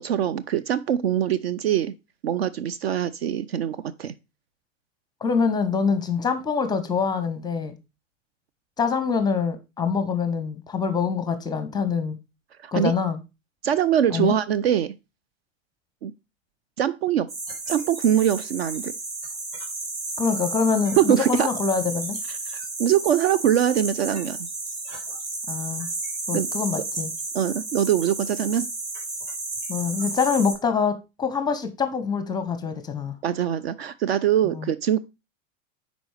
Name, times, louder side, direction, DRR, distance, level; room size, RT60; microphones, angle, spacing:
voice 1, 0.0-1.9 2.2-4.1 12.6-12.9 13.6-14.9 16.0-16.1 16.8-17.3 17.7-18.9 21.0-21.5 22.5-24.5 26.3-26.5 27.3-28.7 33.2-35.0, right 10 dB, 50° right, 0.4 m, -23 dB
voice 2, 5.2-7.7 8.8-12.2 12.7-13.2 14.1-14.3 20.2-22.2 25.5-25.9 26.3-27.1 29.7-33.2 34.5-34.7, left 5 dB, 10° left, 0.7 m, -25 dB
sound 1, 17.3-30.5, right 3 dB, 30° right, 2.5 m, -32 dB
10.5 x 4.0 x 3.3 m
figure-of-eight pair, 95°, 41 cm